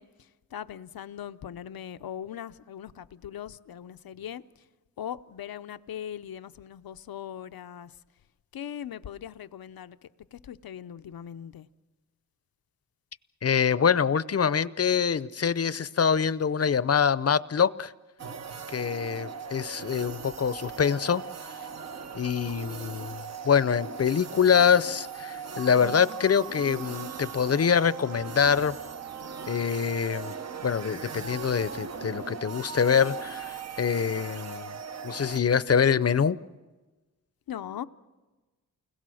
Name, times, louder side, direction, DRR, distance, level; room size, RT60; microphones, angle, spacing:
voice 1, 0.0-4.7 5.0-8.0 8.5-11.7 37.5-37.9, left 9 dB, 90° left, 0.7 m, -40 dB
voice 2, 13.4-17.9 18.7-21.2 22.1-28.7 29.5-30.3 30.6-34.7 35.0-36.4, left 7 dB, 45° left, 0.6 m, -25 dB
sound 1, 18.2-35.4, right 6 dB, 50° right, 0.8 m, -39 dB
29.5 x 21.0 x 6.3 m
wide cardioid pair, 95°, 35 cm